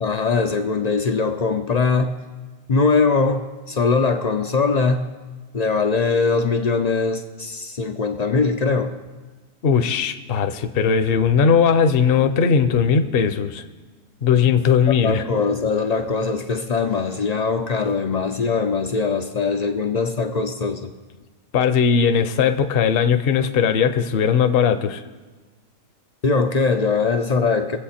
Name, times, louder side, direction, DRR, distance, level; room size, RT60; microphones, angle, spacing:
voice 1, 0.0-2.2 2.7-5.1 5.5-9.0 15.0-20.9 26.2-27.8, left 4 dB, 70° left, 6 dB, 0.3 m, -21 dB
voice 2, 9.6-13.6 14.2-15.2 21.5-25.0, left 6 dB, 50° left, 9 dB, 0.8 m, -18 dB
23.0 x 8.0 x 4.3 m, 1.3 s
omnidirectional pair, 1.6 m